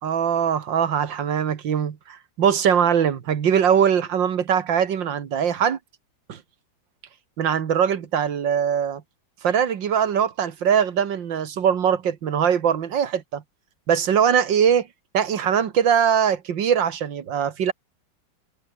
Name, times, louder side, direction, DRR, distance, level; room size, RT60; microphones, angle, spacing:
voice 1, 0.0-5.8 6.3-6.4 7.4-9.0 9.4-13.4 13.9-14.9 15.1-17.7, right 8 dB, 70° right, 2.2 m, -21 dB
omnidirectional pair, 2.1 m